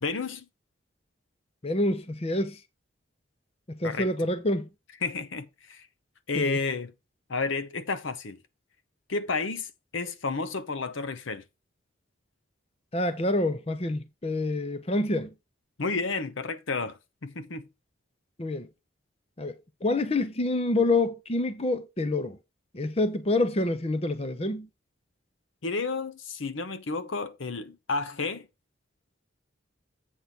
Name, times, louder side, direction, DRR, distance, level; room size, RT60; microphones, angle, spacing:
voice 1, 0.0-0.4 3.8-4.1 5.0-5.9 6.3-6.9 7.3-8.4 9.1-11.4 15.8-17.7 25.6-28.5, left 4 dB, 75° left, 0.9 m, -31 dB
voice 2, 1.6-2.6 3.7-4.7 6.3-6.6 12.9-15.3 18.4-18.7 19.4-22.4 22.7-24.7, left 2 dB, 30° left, 0.7 m, -27 dB
8.2 x 3.8 x 5.9 m
head